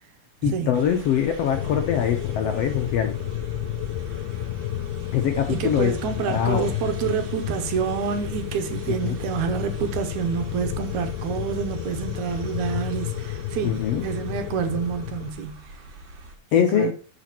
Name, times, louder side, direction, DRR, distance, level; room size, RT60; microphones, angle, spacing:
voice 1, 0.4-3.2 5.1-5.9 6.3-6.7 8.9-9.2 13.6-14.0 16.5-16.9, left 8 dB, 75° left, 1.5 m, -23 dB
sound 1, 0.7-16.4, right 2 dB, 45° right, 1.9 m, -41 dB
sound 2, 1.5-15.3, left 13 dB, 90° left, 2.2 m, -32 dB
voice 2, 5.5-15.5 16.6-16.9, right 7 dB, 75° right, 2.1 m, -28 dB
12.5 x 5.0 x 2.9 m
omnidirectional pair, 3.6 m